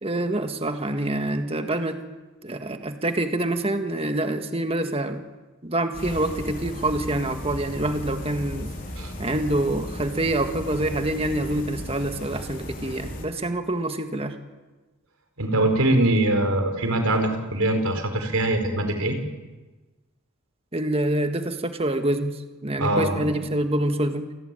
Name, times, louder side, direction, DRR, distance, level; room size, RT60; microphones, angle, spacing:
voice 1, 0.0-2.0 2.4-5.2 5.6-8.7 9.2-14.4 20.7-24.3, right 1 dB, 25° right, 7 dB, 1.7 m, -26 dB
sound 1, 5.9-13.2, left 1 dB, 40° left, 4.4 m, -35 dB
voice 2, 15.4-19.2 22.8-23.2, right 1 dB, 85° right, 6 dB, 4.9 m, -22 dB
28.5 x 18.0 x 9.2 m, 1.2 s
head